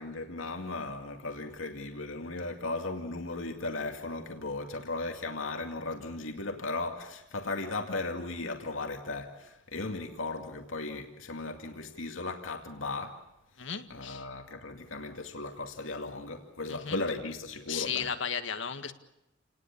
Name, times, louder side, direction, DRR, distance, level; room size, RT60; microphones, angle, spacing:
voice 1, 0.0-13.2 13.9-18.1, left 3 dB, 90° left, 2.4 m, -36 dB
voice 2, 13.6-14.3 16.7-17.0 17.7-18.9, left 7 dB, 70° left, 1.9 m, -35 dB
29.5 x 19.5 x 8.6 m
head